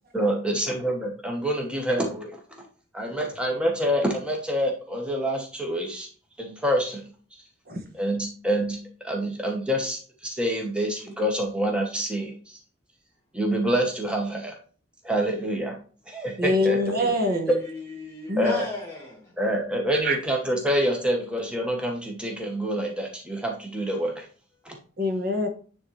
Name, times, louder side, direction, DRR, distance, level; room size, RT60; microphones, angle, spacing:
voice 1, 0.1-2.4 2.9-6.1 6.4-7.1 7.9-12.6 13.3-14.5 15.0-15.8 16.1-16.8 18.4-18.7 19.4-24.2 24.6-24.7, equal, 5° right, 1.1 m, -27 dB
voice 2, 16.4-17.5 18.3-18.6 20.0-20.2 25.0-25.5, left 1 dB, 50° right, 1.0 m, -24 dB
voice 3, 17.3-19.3, left 2 dB, 15° left, 1.7 m, -35 dB
9.4 x 3.7 x 3.2 m
head